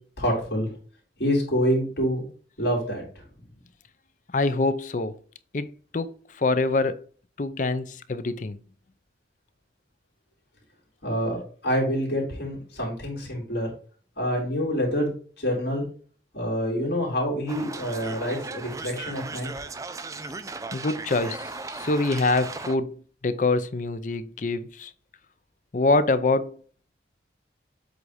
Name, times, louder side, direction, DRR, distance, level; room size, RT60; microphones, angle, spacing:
voice 1, 0.2-0.7 1.2-2.2 2.6-3.0 11.0-11.4 11.6-13.7 14.2-15.9 16.3-19.5, equal, 65° left, 2.9 m, -26 dB
voice 2, 4.3-5.2 5.5-5.7 5.9-7.0 7.4-8.6 20.7-24.9 25.7-26.6, left 3 dB, 45° left, 0.5 m, -25 dB
sound 1, 17.5-22.8, right 3 dB, 20° right, 0.4 m, -37 dB
7.8 x 2.7 x 4.9 m
head